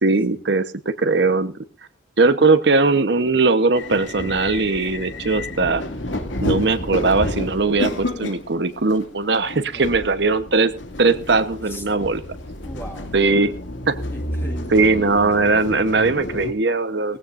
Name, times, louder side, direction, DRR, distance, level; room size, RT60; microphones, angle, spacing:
voice 1, 0.0-1.5 2.2-5.9 6.4-10.7 11.0-12.2 13.1-13.5 13.9-14.0 14.7-17.2, right 3 dB, 65° right, 11 dB, 1.0 m, -19 dB
sound 1, 3.7-16.5, left 1 dB, 90° left, 2.3 m, -30 dB
voice 2, 12.6-13.1 14.1-15.2 17.1-17.2, equal, 15° left, 1 dB, 1.8 m, -38 dB
19.0 x 16.0 x 2.5 m, 0.33 s
head